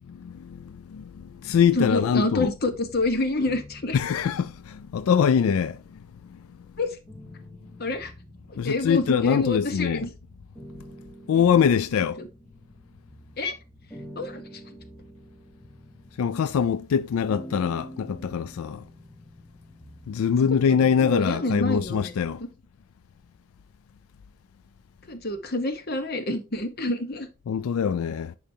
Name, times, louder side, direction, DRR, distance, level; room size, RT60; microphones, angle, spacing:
voice 1, 0.2-2.5 3.9-6.0 6.3-6.4 8.6-10.1 11.3-12.2 16.2-18.8 20.1-22.4 27.5-28.4, left 7 dB, 80° left, 0.3 m, -23 dB
voice 2, 1.7-4.0 6.8-7.0 7.8-8.1 8.5-10.1 11.3-11.4 12.0-12.3 13.4-13.5 14.2-14.6 20.3-20.4 21.0-22.1 25.1-27.3, left 2 dB, 45° left, 1.0 m, -28 dB
sound 1, 3.4-5.2 5.8-22.4, equal, 10° left, 0.6 m, -47 dB
10.0 x 5.0 x 2.8 m
head